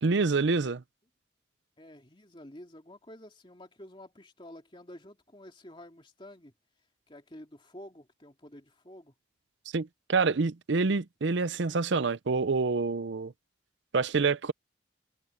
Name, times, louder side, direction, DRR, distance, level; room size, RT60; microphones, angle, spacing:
voice 1, 0.0-0.8 9.7-13.3 13.9-14.5, right 4 dB, 65° right, 0.6 m, -27 dB
voice 2, 1.8-6.5 7.1-9.1, left 1 dB, 25° left, 2.6 m, -50 dB
head